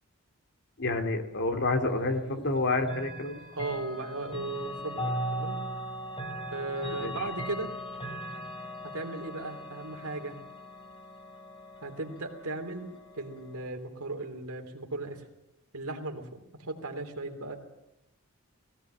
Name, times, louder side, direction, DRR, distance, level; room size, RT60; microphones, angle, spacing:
voice 1, 0.8-3.4 7.0-7.1, left 2 dB, 55° left, 6 dB, 2.6 m, -28 dB
Chime / Clock, 2.8-13.7, equal, 25° left, 3.7 m, -39 dB
voice 2, 3.5-5.6 6.5-7.7 8.8-10.4 11.8-12.9 13.1-15.2 15.7-17.6, right 2 dB, 80° right, 5 dB, 3.3 m, -36 dB
19.0 x 18.0 x 9.1 m, 0.94 s
head